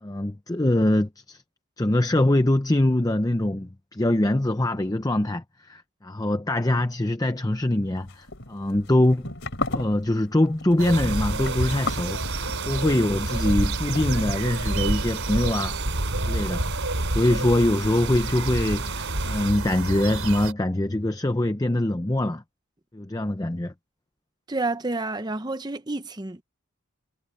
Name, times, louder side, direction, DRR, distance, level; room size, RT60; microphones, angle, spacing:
voice 1, 0.0-1.4 1.8-9.3 9.7-15.9 16.2-16.8 17.1-22.4 22.9-23.7, left 1 dB, 15° left, 0.6 m, -23 dB
sound 1, 8.0-15.0, left 3 dB, 55° left, 4.6 m, -35 dB
sound 2, 10.8-20.5, right 2 dB, 80° right, 3.4 m, -28 dB
sound 3, 10.9-19.5, right 5 dB, 55° right, 5.2 m, -36 dB
voice 2, 24.5-26.4, right 2 dB, 20° right, 0.9 m, -29 dB
head